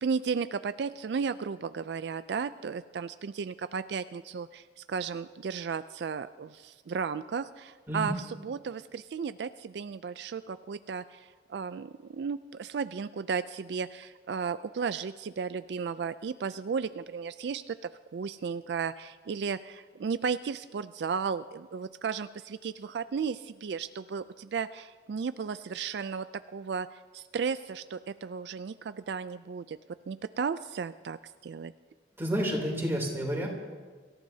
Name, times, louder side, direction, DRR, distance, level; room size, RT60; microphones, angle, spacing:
voice 1, 0.0-26.3 26.5-29.8 30.1-31.7, right 6 dB, 70° right, 12 dB, 0.3 m, -34 dB
voice 2, 32.2-33.5, equal, 15° right, -1 dB, 3.1 m, -30 dB
25.0 x 14.5 x 2.8 m, 1.5 s
head